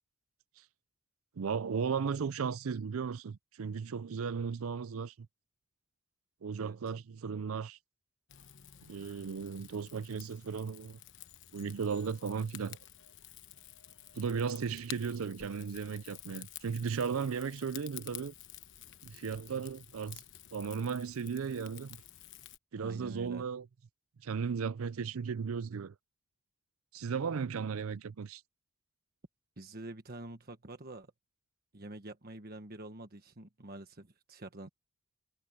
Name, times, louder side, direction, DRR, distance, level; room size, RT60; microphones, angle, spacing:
voice 1, 1.4-5.1 6.4-7.8 8.8-11.0 11.5-12.8 14.1-18.3 19.0-20.2 20.5-22.0 22.7-23.7 24.2-25.9 26.9-28.4, right 6 dB, 70° right, 0.5 m, -36 dB
Rain / Fire, 8.3-22.6, left 12 dB, 60° left, 1.0 m, -51 dB
voice 2, 22.7-23.4 29.6-31.1 31.7-34.7, right 2 dB, 45° right, 1.4 m, -47 dB
head